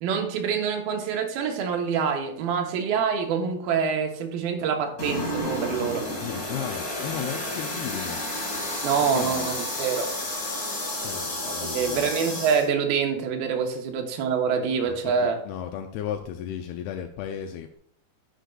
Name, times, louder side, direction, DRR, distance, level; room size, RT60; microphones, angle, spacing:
voice 1, 0.0-6.1 8.8-10.1 11.6-15.4, right 6 dB, 75° right, 3 dB, 2.7 m, -26 dB
sound 1, 5.0-12.7, left 1 dB, 35° left, 1.4 m, -31 dB
voice 2, 6.2-8.2 9.1-9.6 11.0-12.1 14.9-17.8, left 9 dB, 85° left, 5 dB, 2.5 m, -35 dB
9.9 x 6.7 x 2.3 m, 0.64 s
omnidirectional pair, 4.4 m